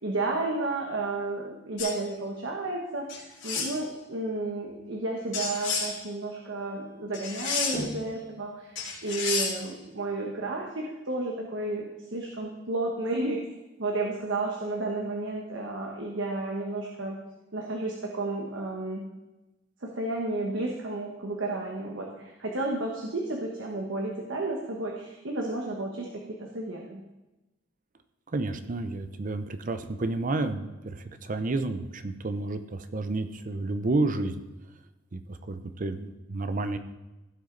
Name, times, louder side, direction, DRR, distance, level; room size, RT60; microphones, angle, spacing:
voice 1, 0.0-8.7 9.0-13.4 13.8-17.2 17.5-19.0 19.8-27.0, right 2 dB, 75° right, 0 dB, 1.2 m, -32 dB
sound 1, 1.8-2.0 3.1-3.7 5.3-5.9 7.1-7.9 8.8-9.6, left 4 dB, 70° left, 3.1 m, -30 dB
voice 2, 28.3-34.4 35.1-36.8, right 2 dB, 45° right, 10 dB, 0.6 m, -30 dB
15.5 x 6.2 x 3.9 m, 1.0 s
head